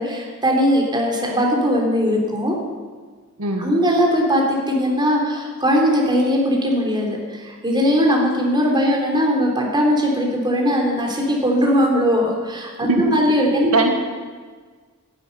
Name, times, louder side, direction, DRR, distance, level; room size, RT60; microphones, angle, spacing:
voice 1, 0.0-2.6 3.6-13.9, equal, 20° right, -1 dB, 3.5 m, -19 dB
voice 2, 3.4-3.6 12.9-13.2 13.7-13.9, right 2 dB, 85° right, 2 dB, 1.7 m, -19 dB
12.0 x 11.5 x 9.3 m, 1.5 s
head